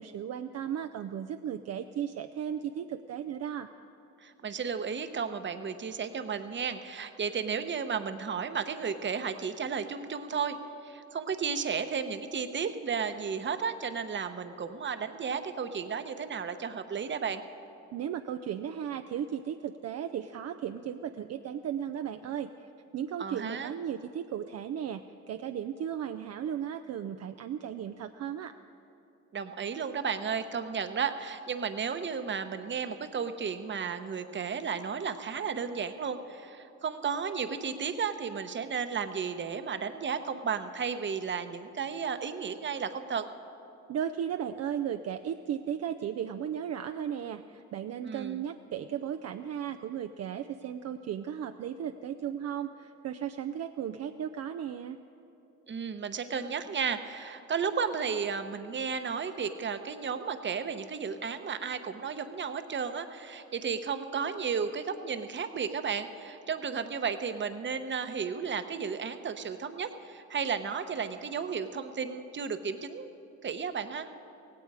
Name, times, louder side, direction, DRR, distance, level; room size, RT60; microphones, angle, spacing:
voice 1, 0.0-3.7 17.9-22.7 22.9-25.0 25.3-28.5 43.9-55.0, right 9 dB, 55° right, 7 dB, 0.5 m, -35 dB
voice 2, 4.2-17.4 23.2-23.7 29.3-43.3 48.0-48.4 55.7-73.1 73.4-74.1, right 6 dB, 40° right, 9 dB, 0.9 m, -33 dB
17.0 x 16.5 x 4.9 m, 2.8 s
cardioid pair, 90°, 30 cm